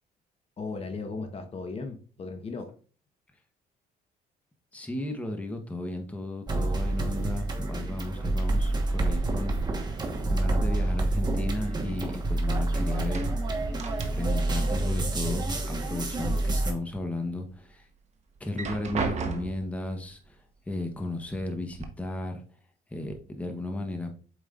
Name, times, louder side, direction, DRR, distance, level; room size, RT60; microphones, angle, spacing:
voice 1, 0.6-2.7, left 4 dB, 35° left, 6 dB, 1.0 m, -36 dB
voice 2, 4.7-13.2 13.5-17.9 18.4-22.4 22.9-24.2, left 2 dB, 10° left, 4 dB, 0.9 m, -35 dB
sound 1, 6.5-16.7, right 2 dB, 25° right, 1.2 m, -28 dB
sound 2, 11.4-12.6 12.9-14.5 14.8-15.8 16.2-17.0 17.5-17.6 18.4-19.8 20.7-20.8 21.2-21.8, right 5 dB, 40° right, 1.0 m, -36 dB
7.6 x 5.0 x 2.5 m, 0.40 s
cardioid pair, 110°, 17 cm